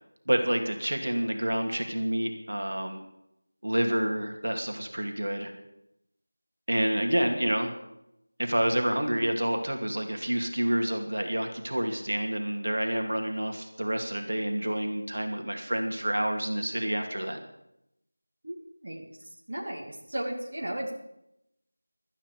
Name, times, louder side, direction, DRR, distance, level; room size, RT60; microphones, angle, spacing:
voice 1, 0.3-3.0 3.6-5.5 6.7-7.7 8.4-17.4, right 1 dB, 60° right, 4 dB, 2.6 m, -28 dB
voice 2, 19.5-20.9, right 1 dB, 40° right, -1 dB, 2.5 m, -34 dB
19.0 x 12.5 x 5.0 m, 0.82 s
figure-of-eight pair, 170°, 0 cm